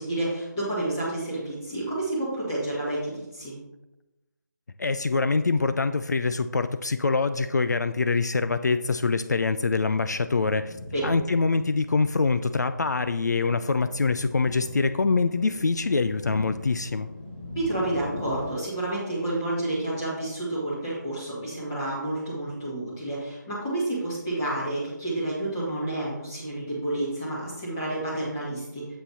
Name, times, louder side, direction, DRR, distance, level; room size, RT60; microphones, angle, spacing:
voice 1, 0.0-3.5 10.9-11.0 17.5-28.9, right 1 dB, 10° left, -7 dB, 1.8 m, -30 dB
voice 2, 4.8-10.8 11.0-17.1, left 4 dB, 60° left, 11 dB, 0.4 m, -24 dB
sound 1, 10.1-18.5, left 1 dB, 35° left, 1.4 m, -41 dB
7.5 x 5.6 x 4.1 m, 0.96 s
figure-of-eight pair, 175°, 10 cm